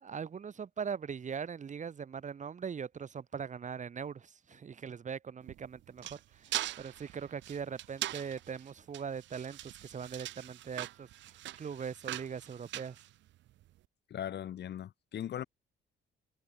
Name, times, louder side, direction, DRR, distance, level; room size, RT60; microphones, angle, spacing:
voice 1, 0.0-13.0, right 6 dB, 40° right, 1.0 m, -41 dB
sound 1, 5.4-13.7, right 15 dB, 70° right, 0.5 m, -42 dB
voice 2, 14.1-15.4, left 10 dB, 60° left, 1.0 m, -39 dB
cardioid pair, 90°, 20 cm